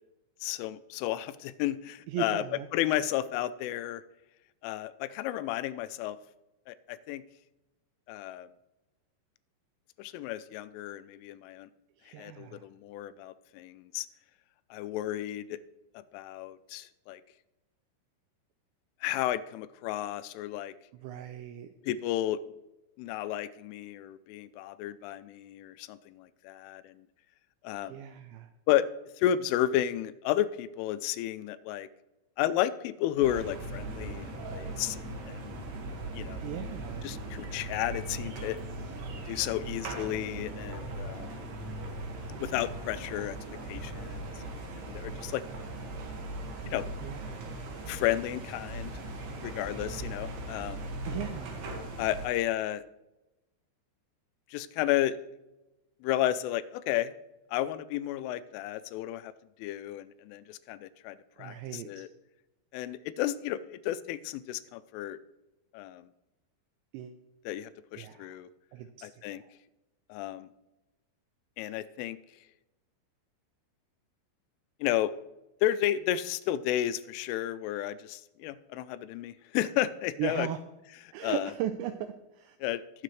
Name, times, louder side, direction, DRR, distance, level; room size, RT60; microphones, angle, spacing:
voice 1, 0.4-2.4 2.7-4.0 4.6-6.2 6.7-7.2 8.1-8.5 10.0-11.7 12.1-14.1 14.7-15.6 15.9-17.2 19.0-20.7 21.8-22.4 23.0-26.9 27.6-28.0 28.7-28.9 29.2-31.9 32.4-35.5 36.2-36.4 37.0-38.6 39.3-41.4 42.4-43.4 43.7-45.4 46.6-46.9 47.9-48.9 49.4-50.9 52.0-52.8 54.5-55.2 56.0-57.1 57.5-59.3 59.6-62.1 62.7-65.2 65.7-66.1 67.5-68.5 69.0-69.4 70.1-70.5 71.6-72.2 74.8-75.1 75.6-80.5 81.2-81.5 82.6-82.8, left 12 dB, 85° left, 14 dB, 3.0 m, -32 dB
voice 2, 2.1-2.7 12.0-12.7 20.9-21.7 27.8-28.5 36.4-37.1 47.0-47.6 51.1-51.7 61.4-62.1 66.9-67.2 68.0-68.4 68.7-69.1 69.4-69.5 80.2-80.6 81.1-82.6, right 11 dB, 85° right, 9 dB, 2.5 m, -37 dB
sound 1, 33.2-52.3, right 2 dB, 60° right, 3.4 m, -39 dB
20.5 x 7.6 x 3.2 m, 0.99 s
omnidirectional pair, 5.7 m